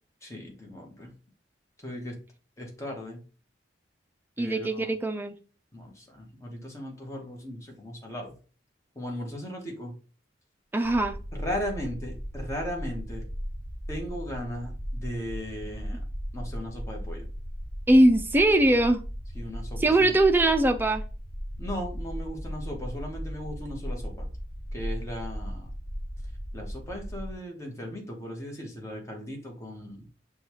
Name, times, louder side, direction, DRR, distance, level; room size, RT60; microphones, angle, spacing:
voice 1, 0.2-1.1 1.8-2.1 2.6-3.2 4.4-4.9 5.7-8.3 9.0-9.9 11.3-13.2 13.9-16.0 16.3-17.3 19.3-20.2 21.6-24.3 24.7-25.7 26.5-30.0, equal, 15° left, 0.9 m, -37 dB
voice 2, 4.4-5.4 10.7-11.2 17.9-19.0 19.8-21.0, right 1 dB, 10° right, 0.3 m, -21 dB
sound 1, 10.8-27.4, equal, 70° left, 1.0 m, -37 dB
6.4 x 2.3 x 2.8 m
head